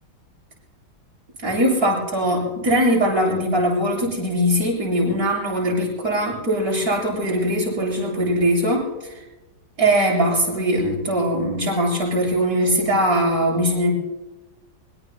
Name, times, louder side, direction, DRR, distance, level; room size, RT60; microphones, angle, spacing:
voice 1, 1.4-9.2 9.8-13.9, equal, 55° right, -3 dB, 7.0 m, -21 dB
24.5 x 23.0 x 2.2 m, 1.1 s
omnidirectional pair, 1.9 m